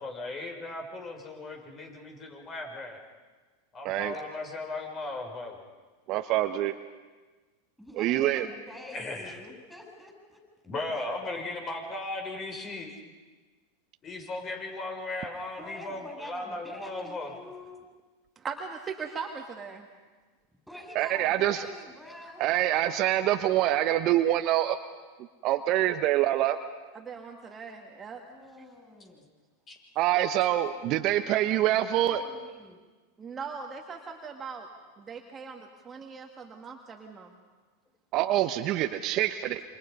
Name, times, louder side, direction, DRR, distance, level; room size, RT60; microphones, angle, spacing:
voice 1, 0.0-3.0 3.7-5.6 8.9-9.4 10.7-13.0 14.0-17.3 29.7-29.8, left 2 dB, 30° left, 2 dB, 6.3 m, -37 dB
voice 2, 6.1-6.8 7.9-8.5 20.9-21.7 22.4-24.8 25.4-26.6 29.9-32.2 38.1-39.6, right 13 dB, 50° right, 8 dB, 1.1 m, -25 dB
voice 3, 7.8-10.4 15.6-17.9 20.7-22.4 28.3-29.3 30.7-30.8 31.4-32.8, left 1 dB, ahead, 1 dB, 7.8 m, -46 dB
voice 4, 18.4-19.9 26.9-28.2 28.6-28.7 33.2-34.7 35.0-37.4, right 5 dB, 25° right, 1 dB, 2.2 m, -40 dB
28.0 x 25.5 x 5.5 m, 1.3 s
hypercardioid pair, 100°, 0 cm